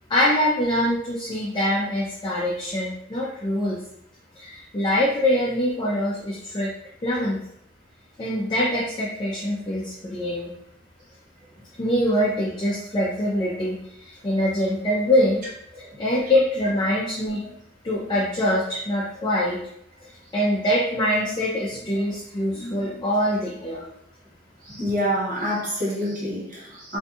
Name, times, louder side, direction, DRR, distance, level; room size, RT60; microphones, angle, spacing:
voice 1, 0.1-3.8 4.3-6.7 7.0-7.4 8.2-10.5 11.8-15.4 15.7-17.4 17.8-19.6 20.1-23.8, left 1 dB, 25° left, -4 dB, 0.4 m, -24 dB
voice 2, 24.6-27.0, equal, 45° right, -7 dB, 1.2 m, -27 dB
2.5 x 2.3 x 2.6 m, 0.76 s
head